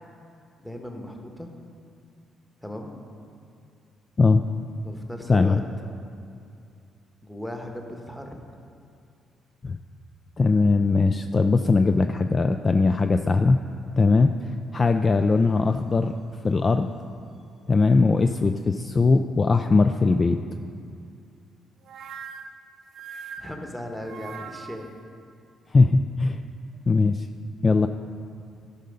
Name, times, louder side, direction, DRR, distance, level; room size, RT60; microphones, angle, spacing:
voice 1, 0.6-1.5 2.6-3.0 4.8-5.6 7.2-8.4 23.4-24.9, left 1 dB, 5° left, 2 dB, 1.2 m, -37 dB
voice 2, 5.3-5.6 9.6-9.8 10.4-13.6 14.0-16.1 16.4-16.9 17.7-20.4 25.7-26.4 26.9-27.3 27.6-27.9, left 3 dB, 35° left, 7 dB, 0.3 m, -20 dB
sound 1, 21.9-25.0, right 6 dB, 70° right, 0.5 m, -41 dB
12.0 x 5.4 x 5.3 m, 2.5 s
cardioid pair, 90°, 0 cm